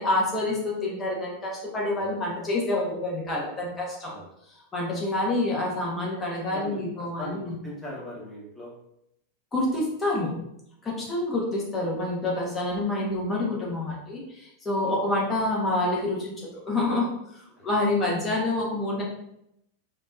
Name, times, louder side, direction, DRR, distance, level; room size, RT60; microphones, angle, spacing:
voice 1, 0.0-4.1 4.7-7.6 9.5-10.3 10.8-19.0, left 2 dB, 20° left, -3 dB, 1.0 m, -27 dB
voice 2, 7.2-8.7 10.8-11.0 14.8-14.9 17.5-17.6, equal, ahead, -8 dB, 1.2 m, -39 dB
3.2 x 2.6 x 2.2 m, 0.79 s
figure-of-eight pair, 90°, 0 cm